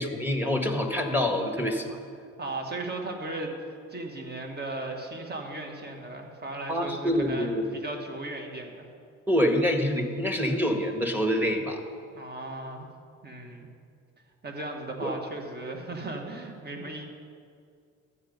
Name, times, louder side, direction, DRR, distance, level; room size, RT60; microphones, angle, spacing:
voice 1, 0.0-2.0 6.7-7.6 9.3-11.8 15.0-15.1, equal, 5° right, 2 dB, 1.6 m, -26 dB
voice 2, 2.4-8.9 12.2-12.9 13.2-13.7 14.4-17.0, right 2 dB, 35° right, 2 dB, 1.8 m, -36 dB
12.5 x 8.8 x 5.4 m, 2.3 s
cardioid pair, 90°, 30 cm